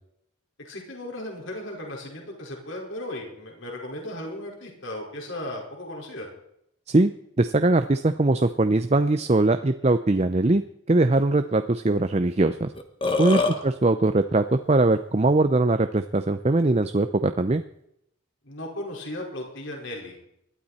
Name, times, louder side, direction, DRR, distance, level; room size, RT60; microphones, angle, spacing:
voice 1, 0.6-6.3 13.3-13.7 18.4-20.2, left 1 dB, 65° left, 0 dB, 5.0 m, -36 dB
voice 2, 6.9-10.6 10.9-12.7 13.2-17.6, right 2 dB, 30° right, 9 dB, 0.6 m, -21 dB
Burping eructation, 12.4-12.5 12.8-13.6, left 2 dB, 25° left, 1.5 m, -24 dB
20.5 x 12.5 x 4.3 m, 0.75 s
head